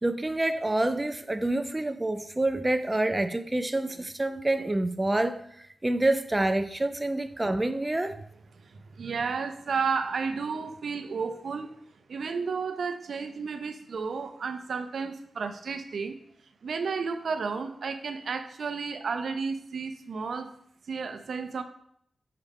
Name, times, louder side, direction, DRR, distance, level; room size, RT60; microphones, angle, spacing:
voice 1, 0.0-5.4 5.8-8.1, right 2 dB, 15° right, 0.4 m, -27 dB
voice 2, 8.6-11.8 12.1-16.2 16.6-20.5 20.9-21.6, right 5 dB, 70° right, 0.6 m, -32 dB
6.7 x 4.7 x 3.6 m
wide cardioid pair, 150°, 0 cm